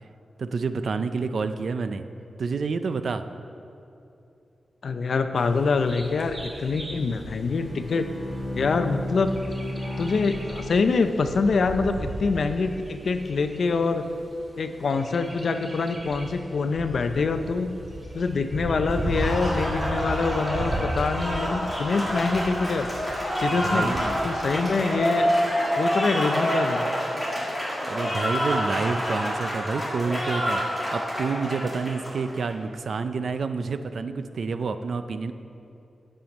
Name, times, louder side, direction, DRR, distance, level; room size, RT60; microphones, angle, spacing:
voice 1, 0.4-2.0 2.4-3.2 23.5-24.2 27.9-30.6 30.9-35.3, right 4 dB, 60° right, 10 dB, 0.4 m, -28 dB
voice 2, 4.8-8.1 8.5-9.3 10.0-14.0 14.6-17.8 18.1-22.9 23.4-23.9 24.2-25.3 25.6-26.9, left 4 dB, 60° left, 8 dB, 0.5 m, -25 dB
Bird vocalization bird call bird song, 5.4-24.7, right 1 dB, 25° right, 1.2 m, -37 dB
Bowed string instrument, 7.4-11.5, left 1 dB, 10° left, 1.8 m, -34 dB
Applause, 18.9-32.5, equal, 5° right, 1.8 m, -27 dB
8.6 x 7.5 x 5.3 m, 2.7 s
wide cardioid pair, 160°, 0 cm